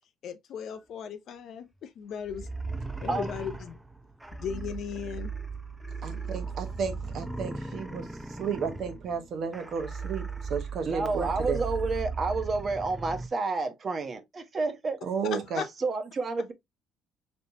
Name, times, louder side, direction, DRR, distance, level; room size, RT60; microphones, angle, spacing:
voice 1, 0.2-2.5 3.0-3.8 4.4-5.3 15.3-15.7, left 7 dB, 50° left, 0.5 m, -37 dB
sound 1, 2.3-13.3, right 4 dB, 5° right, 0.4 m, -37 dB
voice 2, 6.0-11.6 15.0-15.6, right 6 dB, 45° right, 1.0 m, -33 dB
voice 3, 10.9-15.0 15.8-16.5, right 3 dB, 25° right, 0.8 m, -30 dB
4.0 x 3.3 x 2.7 m
cardioid pair, 150°, 0 cm